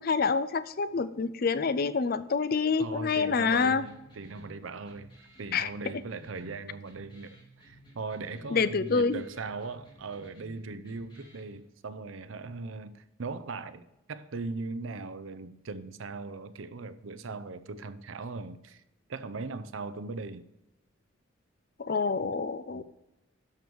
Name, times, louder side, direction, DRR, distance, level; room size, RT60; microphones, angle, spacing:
voice 1, 0.0-3.8 5.5-5.7 8.5-9.2 21.8-22.8, left 5 dB, 50° left, 0.5 m, -27 dB
voice 2, 2.8-5.1 5.4-18.8 19.1-20.4 22.7-22.8, right 3 dB, 80° right, 0.6 m, -39 dB
sound 1, 3.6-11.6, right 1 dB, 25° left, 2.9 m, -55 dB
12.0 x 5.3 x 4.6 m
head